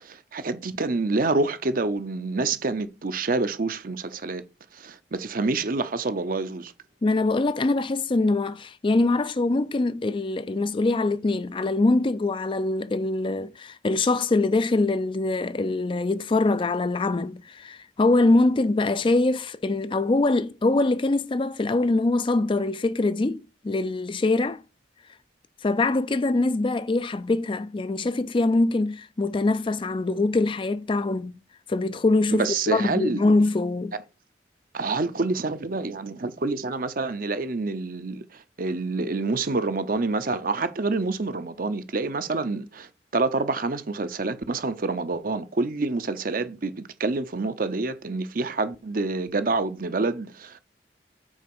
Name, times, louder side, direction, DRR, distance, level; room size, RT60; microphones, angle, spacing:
voice 1, 0.0-4.4 4.7-6.7 32.3-33.2 34.7-50.6, right 3 dB, 50° right, 0.7 m, -27 dB
voice 2, 7.0-24.6 25.6-31.3 31.7-33.9, left 2 dB, 30° left, 0.4 m, -23 dB
6.3 x 4.7 x 6.1 m
head